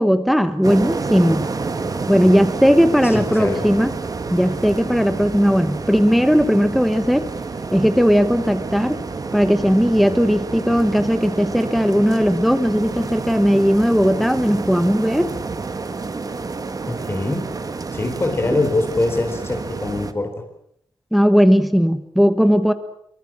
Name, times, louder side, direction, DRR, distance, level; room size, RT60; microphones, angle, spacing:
voice 1, 0.0-1.4 2.1-3.9 4.3-7.2 7.7-9.0 9.3-15.3 21.1-22.7, equal, ahead, 10 dB, 1.1 m, -17 dB
sound 1, 0.6-20.1, right 4 dB, 45° right, 1.6 m, -29 dB
voice 2, 3.0-3.7 16.9-17.4 17.9-20.3, left 2 dB, 25° left, 5 dB, 4.2 m, -23 dB
24.0 x 23.5 x 7.5 m, 0.71 s
wide cardioid pair, 155°, 9 cm